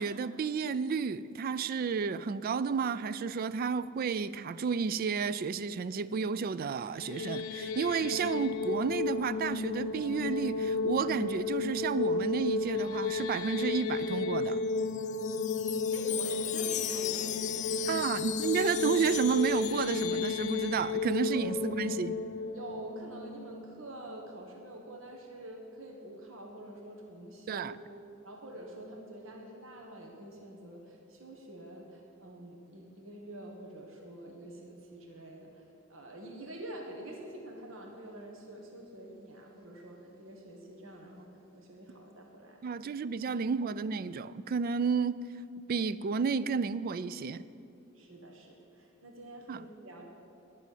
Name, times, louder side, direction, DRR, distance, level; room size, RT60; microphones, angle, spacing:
voice 1, 0.0-14.6 17.9-22.2 27.5-27.7 42.6-45.2 45.7-47.5 49.5-49.6, right 5 dB, 45° right, 16 dB, 0.3 m, -31 dB
sound 1, 6.9-24.0, left 3 dB, 90° left, 0.6 m, -33 dB
Wind chime, 14.5-20.7, left 12 dB, 35° left, 0.3 m, -38 dB
voice 2, 15.9-18.1 21.3-21.6 22.5-27.7 28.2-41.3 41.5-42.7 47.9-50.1, right 1 dB, 70° right, 1 dB, 1.4 m, -47 dB
11.0 x 6.3 x 9.1 m, 2.7 s
head